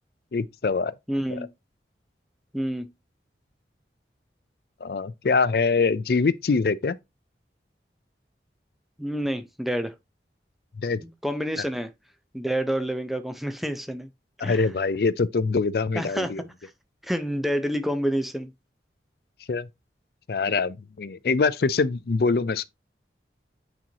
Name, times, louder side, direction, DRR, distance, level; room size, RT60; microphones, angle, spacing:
voice 1, 0.3-0.9 1.3-1.4 4.8-7.0 10.8-11.0 14.4-16.4 19.5-19.7 20.3-22.6, left 4 dB, 60° left, 0.4 m, -24 dB
voice 2, 1.1-1.5 2.5-2.9 9.0-9.9 11.2-11.9 12.3-14.1 14.4-14.7 15.9-16.3 17.0-18.5, equal, ahead, 0.6 m, -28 dB
8.6 x 4.4 x 2.8 m
head